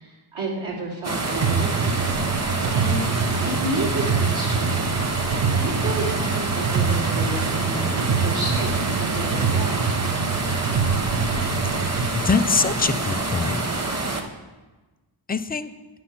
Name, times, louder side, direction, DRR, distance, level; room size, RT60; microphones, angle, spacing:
voice 1, 0.0-1.9 2.7-3.1 3.4-4.8 5.5-9.9, right 2 dB, 80° right, -5 dB, 2.9 m, -31 dB
sound 1, 1.0-14.2, right 2 dB, 35° right, 1.0 m, -27 dB
sound 2, 1.4-12.2, right 6 dB, 50° right, 0.7 m, -25 dB
voice 2, 11.7-13.7 15.3-15.7, left 4 dB, 20° left, 11 dB, 0.4 m, -24 dB
9.4 x 6.0 x 5.9 m, 1.2 s
wide cardioid pair, 95°, 47 cm